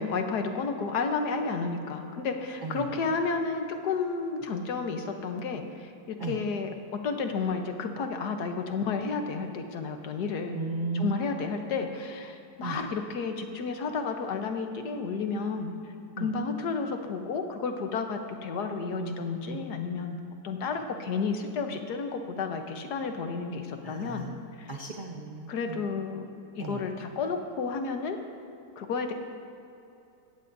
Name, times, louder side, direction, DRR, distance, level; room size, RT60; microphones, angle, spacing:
voice 1, 0.0-10.6 10.9-15.7 16.2-24.3 24.6-24.7 25.5-26.3 26.6-28.2 28.8-29.1, left 4 dB, 65° left, 5 dB, 1.5 m, -31 dB
voice 2, 2.6-2.9 6.2-6.4 10.5-11.1 12.6-12.8 16.2-16.3 19.0-19.6 23.8-24.4 24.7-25.8 26.6-26.8, right 4 dB, 35° right, -2 dB, 0.8 m, -35 dB
17.0 x 15.0 x 2.7 m, 2.8 s
omnidirectional pair, 1.9 m